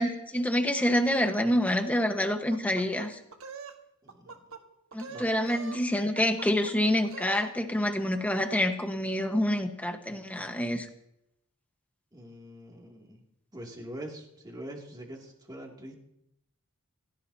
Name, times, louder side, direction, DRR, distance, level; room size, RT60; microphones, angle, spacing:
voice 1, 0.0-3.2 4.9-10.9, left 1 dB, 5° left, 5 dB, 1.4 m, -27 dB
sound 1, 2.5-3.8 4.1-4.6 4.9-5.8 6.2-6.7 7.0-7.5, right 5 dB, 65° right, 1.6 m, -44 dB
voice 2, 4.0-4.4 5.1-5.3 12.1-13.2 13.5-16.0, right 1 dB, 20° right, -1 dB, 2.7 m, -44 dB
29.5 x 16.5 x 2.9 m, 0.81 s
head